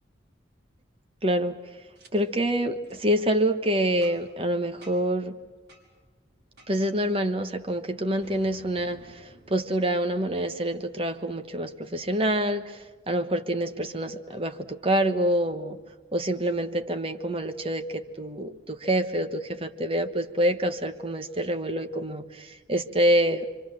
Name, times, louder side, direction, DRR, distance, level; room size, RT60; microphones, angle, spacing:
voice 1, 1.2-1.6 2.1-5.4 6.7-15.8 16.1-23.4, right 1 dB, 30° right, 7 dB, 1.2 m, -26 dB
Boom, 1.9-2.1 2.8-3.1 4.0-4.4 4.8-5.2 5.7-5.9 6.6-7.0 8.2-10.9, right 1 dB, 55° right, 5.4 m, -53 dB
27.5 x 25.0 x 7.6 m, 1.3 s
head